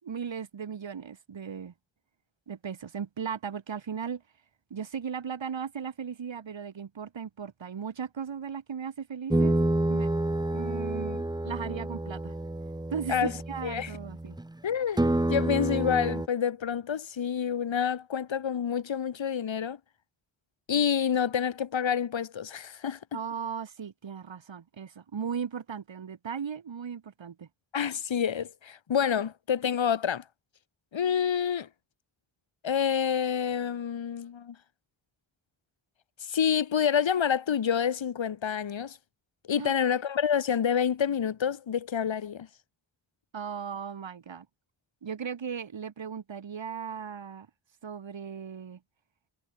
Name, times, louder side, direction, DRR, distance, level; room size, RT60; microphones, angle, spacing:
voice 1, 0.0-1.7 2.5-4.2 4.7-9.6 9.9-10.1 10.5-12.4 12.9-14.4 23.1-27.5 39.6-39.7 43.3-44.5 45.0-47.5 47.8-48.8, right 7 dB, 80° right, 6.6 m, -37 dB
sound 1, 9.3-14.5 15.0-16.3, right 2 dB, 10° right, 1.0 m, -29 dB
voice 2, 14.6-15.0 15.3-19.8 20.7-23.0 27.7-30.2 30.9-31.7 32.6-34.6 36.2-39.0 39.5-42.5, left 8 dB, 90° left, 3.7 m, -28 dB
cardioid pair, 75°, 44 cm